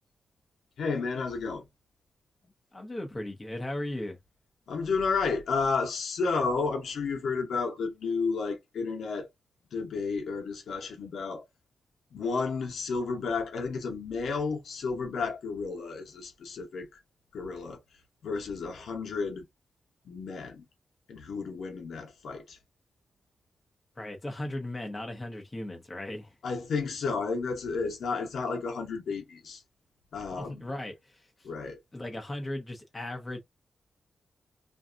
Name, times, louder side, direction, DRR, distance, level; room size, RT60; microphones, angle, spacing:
voice 1, 0.8-1.6 4.7-9.3 9.7-11.4 12.1-16.9 17.3-17.8 18.2-19.4 20.0-20.6 21.1-22.6 26.4-29.6 30.1-30.7 31.4-31.8, left 4 dB, 85° left, 0.8 m, -32 dB
voice 2, 2.7-4.2 24.0-26.3 30.4-31.2 31.9-33.4, left 1 dB, 15° left, 0.8 m, -37 dB
2.6 x 2.3 x 2.4 m
wide cardioid pair, 160°, 0 cm